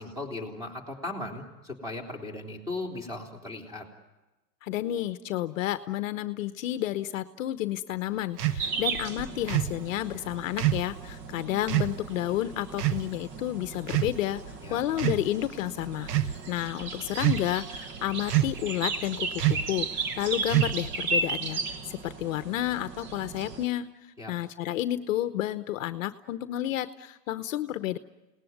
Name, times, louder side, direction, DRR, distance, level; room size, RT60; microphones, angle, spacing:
voice 1, 0.0-3.8 14.6-14.8 24.2-24.3, left 2 dB, 5° right, 2 dB, 3.3 m, -37 dB
voice 2, 4.6-14.4 14.7-23.9 24.3-28.0, left 13 dB, 55° left, 11 dB, 1.0 m, -31 dB
sound 1, 8.4-8.6 9.5-9.8 10.6-10.9 11.7-11.9 12.8-13.1 13.8-14.4 14.9-15.3 16.0-16.3 17.2-17.6 18.3-18.7 19.4-19.7 20.5-21.0, right 13 dB, 75° right, 1.3 m, -26 dB
sound 2, 8.6-23.6, right 4 dB, 25° right, 1.0 m, -36 dB
28.5 x 19.0 x 9.4 m, 1.1 s
hypercardioid pair, 155°, 48 cm